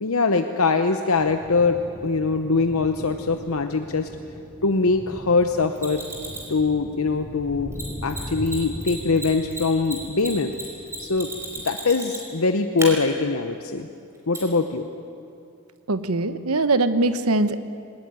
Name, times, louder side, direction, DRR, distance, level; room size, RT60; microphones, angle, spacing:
voice 1, 0.0-4.1 4.6-6.0 6.5-7.7 8.0-10.5 11.0-11.3 11.6-13.9 14.3-14.9, left 4 dB, 70° left, 7 dB, 0.9 m, -22 dB
sound 1, 1.2-11.6, equal, 40° left, 4.6 m, -40 dB
Mechanisms, 5.8-6.5 7.7-7.8 8.1-8.2 8.4-8.6 8.8-12.4 12.8-12.9 14.3-14.4, right 2 dB, 10° right, 5.0 m, -33 dB
voice 2, 15.9-17.6, right 2 dB, 80° right, 11 dB, 1.1 m, -21 dB
21.0 x 19.0 x 9.5 m, 2.5 s
head